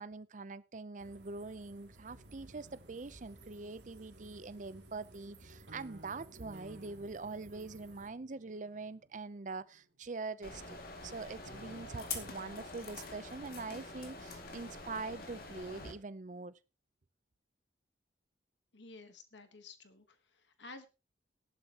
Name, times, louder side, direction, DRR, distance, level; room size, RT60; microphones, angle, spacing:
voice 1, 0.0-16.5, right 3 dB, 40° right, 0.6 m, -44 dB
sound 1, 1.0-8.1, right 1 dB, 65° right, 2.6 m, -58 dB
sound 2, 2.1-10.3 11.5-12.3, right 1 dB, 85° right, 2.8 m, -58 dB
sound 3, 10.4-15.9, left 3 dB, 50° left, 2.2 m, -45 dB
voice 2, 18.7-20.9, left 3 dB, 75° left, 1.3 m, -53 dB
15.5 x 11.5 x 2.9 m
head